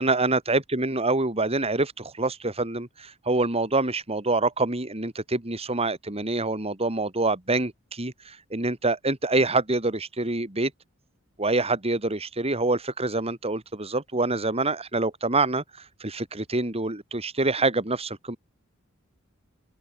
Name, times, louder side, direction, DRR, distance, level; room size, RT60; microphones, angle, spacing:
voice 1, 0.0-10.7 11.4-15.6 16.0-18.4, right 2 dB, 30° right, 3.1 m, -26 dB
open air
head